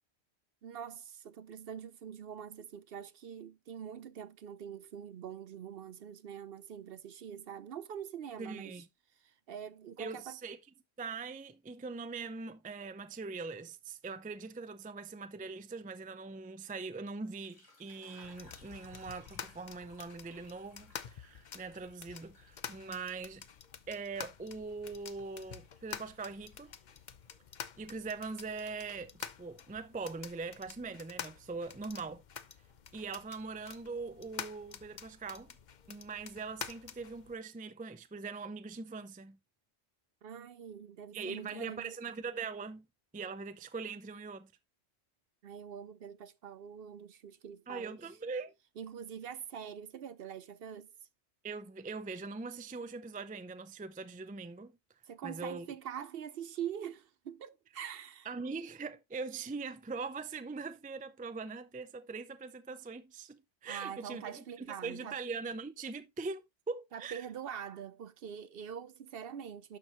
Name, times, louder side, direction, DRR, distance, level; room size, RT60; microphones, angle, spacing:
voice 1, 0.6-8.8 9.2-10.4 40.2-41.9 45.4-48.0 48.8-50.9 55.1-58.3 63.7-65.2 66.9-69.8, right 8 dB, 65° right, 0.8 m, -44 dB
voice 2, 8.4-8.9 10.0-10.6 11.0-23.4 23.9-26.7 27.8-32.2 32.9-35.5 35.9-39.4 41.1-42.9 43.1-44.5 47.7-48.5 51.4-54.7 55.2-55.7 58.3-67.3, right 4 dB, 15° right, 0.4 m, -42 dB
sound 1, 17.2-23.6 24.0-28.1 28.4-29.3, left 1 dB, 70° left, 4.7 m, -63 dB
sound 2, 18.2-37.3, left 7 dB, 50° left, 0.7 m, -48 dB
12.0 x 4.5 x 3.1 m
omnidirectional pair, 1.1 m